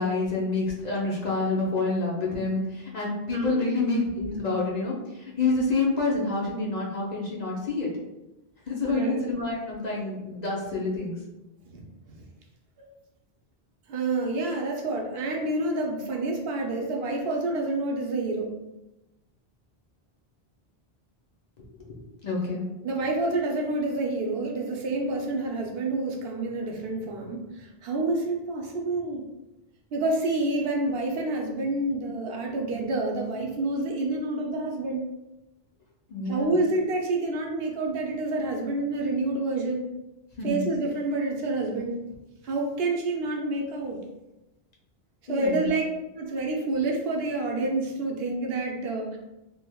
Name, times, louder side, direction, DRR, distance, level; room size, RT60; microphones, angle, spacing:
voice 1, 0.0-7.9 8.7-11.2 21.6-22.7 36.1-36.5 40.4-40.7 45.3-45.7, left 3 dB, 50° left, -4 dB, 0.7 m, -28 dB
voice 2, 8.8-9.2 11.7-11.8 12.8-12.9 13.9-18.6 22.8-29.3 29.9-35.1 36.3-39.9 40.4-42.0 42.4-44.0 45.3-45.8 46.2-49.2, right 2 dB, 75° right, 1 dB, 0.8 m, -28 dB
3.3 x 3.0 x 2.2 m, 0.96 s
omnidirectional pair, 1.1 m